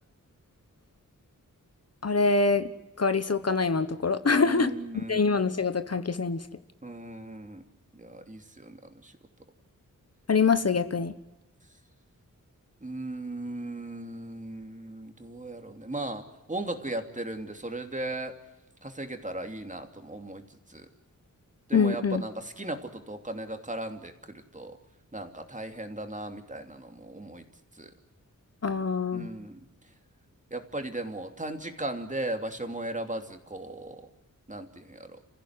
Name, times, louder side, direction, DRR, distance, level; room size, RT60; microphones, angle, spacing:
voice 1, 2.0-2.7 3.0-6.4 10.3-11.1 21.7-22.2 28.6-29.3, left 4 dB, 50° left, 11 dB, 1.2 m, -25 dB
voice 2, 4.3-5.2 6.8-7.6 7.9-9.1 12.8-18.4 18.8-20.4 20.7-20.9 21.7-24.8 25.1-27.4 27.8-27.9 29.1-29.6 30.5-34.1 34.5-35.2, right 2 dB, 25° right, 5 dB, 2.8 m, -37 dB
30.0 x 15.5 x 9.7 m, 1.0 s
wide cardioid pair, 100°, 33 cm